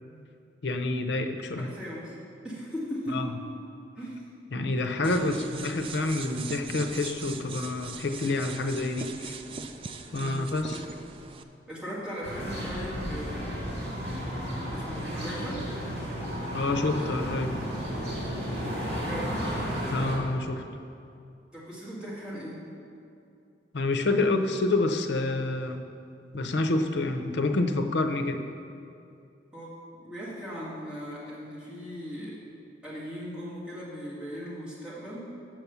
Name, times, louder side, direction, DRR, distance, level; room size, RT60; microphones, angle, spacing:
voice 1, 0.6-1.7 3.1-3.2 4.5-9.4 10.1-10.8 16.5-17.5 19.9-20.6 23.7-25.8 26.3-28.4, left 2 dB, 75° left, 6 dB, 0.6 m, -28 dB
voice 2, 1.6-2.1 2.4-3.3 4.0-4.2 5.0-5.3 10.2-10.8 11.7-13.6 14.7-15.7 19.0-19.4 21.5-22.6 29.5-32.4 32.8-35.3, equal, 5° right, -9 dB, 2.0 m, -38 dB
sound 1, 5.0-11.4, right 4 dB, 30° right, 0.3 m, -40 dB
sound 2, 12.2-20.2, equal, 80° right, 2.3 m, -33 dB
7.5 x 5.9 x 6.8 m, 2.6 s
head